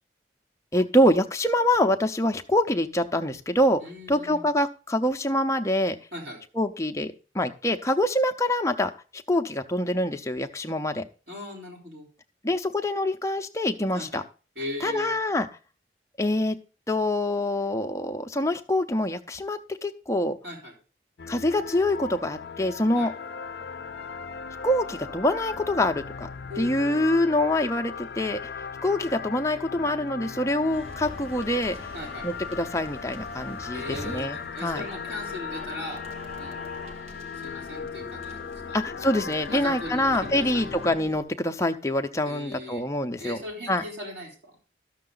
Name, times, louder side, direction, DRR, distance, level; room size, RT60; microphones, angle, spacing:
voice 1, 0.7-3.8 4.1-6.0 6.5-11.1 12.4-14.2 14.8-15.5 16.2-16.6 16.9-20.4 21.3-23.1 24.6-26.3 26.6-28.4 28.8-31.9 32.2-34.9 38.7-43.4 43.7-43.8, left 1 dB, 15° left, 6 dB, 0.6 m, -25 dB
voice 2, 3.8-4.5 6.1-6.4 11.3-12.1 13.9-14.2 14.6-15.1 20.4-20.7 22.9-23.1 26.5-27.1 31.9-32.3 33.7-36.0 36.4-36.6 37.4-38.8 39.5-40.7 42.3-42.8 43.2-44.6, left 1 dB, 60° right, -3 dB, 4.0 m, -38 dB
sound 1, 21.2-41.0, left 6 dB, 60° left, 0.5 m, -38 dB
sound 2, 30.7-41.2, left 1 dB, 35° right, 1.4 m, -44 dB
12.5 x 6.6 x 3.8 m, 0.35 s
head